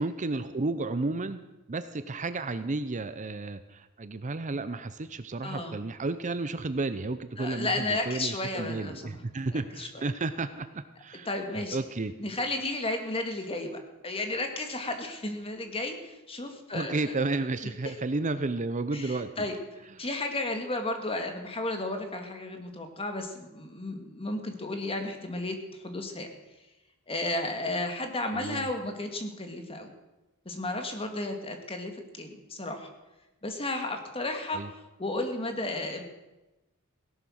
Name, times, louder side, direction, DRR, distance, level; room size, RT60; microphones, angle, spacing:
voice 1, 0.0-1.4 1.7-11.3 11.7-12.1 16.7-19.5 20.0-20.1 28.3-28.7 34.5-34.7, right 3 dB, 35° right, 11 dB, 0.6 m, -32 dB
voice 2, 5.4-5.8 7.4-9.2 9.5-9.9 11.3-11.8 12.2-17.1 17.6-17.9 18.9-19.6 20.0-26.3 27.1-29.9 30.5-32.9 33.4-34.6 35.0-36.0, left 2 dB, 25° left, 5 dB, 2.0 m, -33 dB
17.0 x 11.0 x 6.4 m, 1.0 s
head